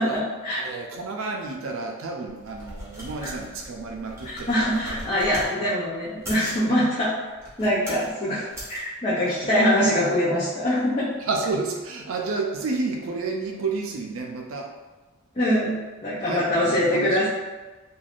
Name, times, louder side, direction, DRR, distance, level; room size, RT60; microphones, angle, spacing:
voice 1, 0.0-0.6 3.2-3.3 4.5-7.1 7.6-11.1 15.4-17.3, equal, 30° left, -10 dB, 0.6 m, -23 dB
voice 2, 0.6-5.0 5.6-5.7 6.7-6.8 9.3-9.4 11.2-14.7 16.2-17.3, right 3 dB, 70° right, 1 dB, 0.4 m, -31 dB
sound 1, 2.3-5.5 6.1-6.6 7.3-8.1 8.5-8.8, equal, 15° right, 0.8 m, -40 dB
3.3 x 2.3 x 2.4 m, 1.2 s
head